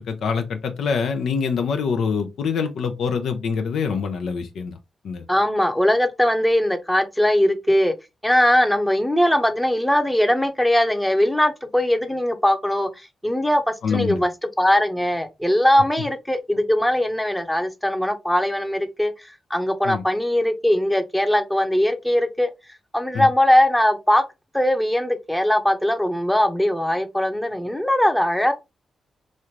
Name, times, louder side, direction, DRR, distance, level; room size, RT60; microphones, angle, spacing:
voice 1, 0.0-4.8 5.0-5.2 13.8-14.2 19.8-20.0 23.1-23.3, left 6 dB, 75° left, 0.5 m, -25 dB
voice 2, 5.3-7.9 8.2-13.6 13.9-14.3 14.6-22.5 22.9-24.2 24.5-28.5, left 1 dB, 5° left, 0.7 m, -20 dB
3.1 x 2.4 x 2.8 m
supercardioid pair, 50°, 0 cm